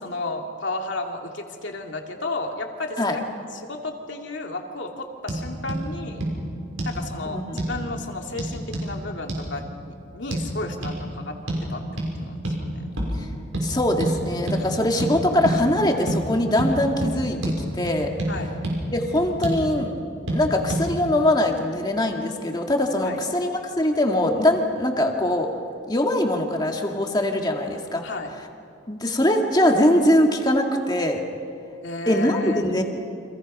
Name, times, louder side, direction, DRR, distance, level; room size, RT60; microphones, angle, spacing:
voice 1, 0.0-3.2 3.5-6.2 6.8-11.3 11.6-11.8 12.2-12.9 18.3-18.5 23.0-23.2 28.0-28.3 31.8-32.7, left 2 dB, 65° left, 2 dB, 2.6 m, -33 dB
sound 1, 5.3-5.4 5.7-5.8 6.2-6.3 6.8-7.0 7.6-7.8 8.4-8.9 9.3-9.4 10.3-10.4 10.8-11.0 11.5-11.7 12.0-12.1 12.4-12.6 13.0-13.2 13.5-13.7 14.0-14.1 14.5-14.6 15.0-15.1 15.4-15.6 16.1-16.2 16.6-16.7 17.0-17.1 17.4-17.6 17.9-18.3 18.6-18.8 19.2-19.6 20.3-20.4 20.7-20.8, right 1 dB, 80° right, 6.3 m, -26 dB
voice 2, 7.3-7.6 13.6-17.4 17.7-18.1 18.9-19.9 20.3-25.5 25.9-28.0 28.9-31.2 32.1-32.8, left 1 dB, 20° left, 2 dB, 2.2 m, -22 dB
30.0 x 26.5 x 5.6 m, 2.4 s
head